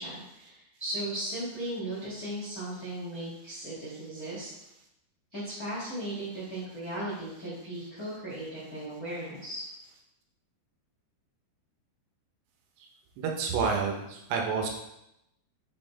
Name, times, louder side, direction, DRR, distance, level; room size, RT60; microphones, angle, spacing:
voice 1, 0.0-4.5 5.3-9.6, right 1 dB, 85° left, -8 dB, 0.8 m, -37 dB
voice 2, 13.2-14.7, right 5 dB, 80° right, 1 dB, 3.0 m, -29 dB
6.7 x 4.1 x 3.9 m, 0.84 s
omnidirectional pair, 4.9 m